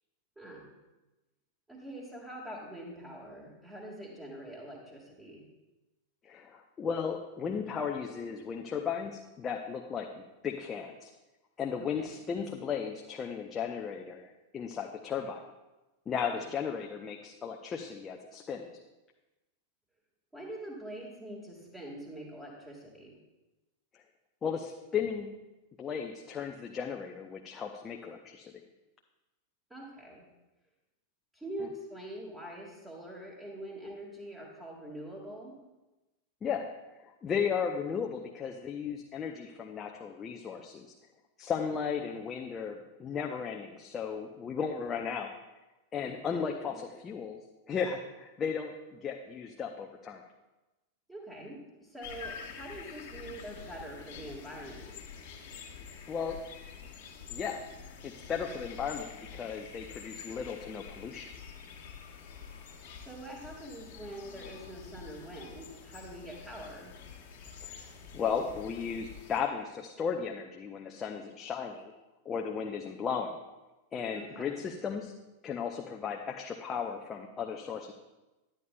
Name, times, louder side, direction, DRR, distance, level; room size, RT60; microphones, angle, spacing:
voice 1, 0.4-0.7 1.7-5.4 11.8-12.1 16.3-16.4 20.3-23.2 29.7-30.3 31.3-35.6 41.9-42.0 46.0-46.6 51.1-55.0 63.0-67.0 74.1-74.6, right 1 dB, 10° right, -6 dB, 1.6 m, -44 dB
voice 2, 6.2-11.1 11.6-15.4 16.1-18.7 23.9-24.0 24.4-25.3 25.8-28.5 36.4-36.7 37.0-40.9 41.4-45.3 45.9-47.4 47.7-50.2 56.1-56.4 57.3-57.6 58.0-61.3 67.6-67.9 68.1-71.9 72.3-73.4 73.9-75.1 75.4-77.9, left 6 dB, 25° left, 2 dB, 0.6 m, -35 dB
sound 1, 52.0-69.4, left 6 dB, 50° left, 1.4 m, -47 dB
10.5 x 10.0 x 2.2 m, 1.1 s
figure-of-eight pair, 90°, 0 cm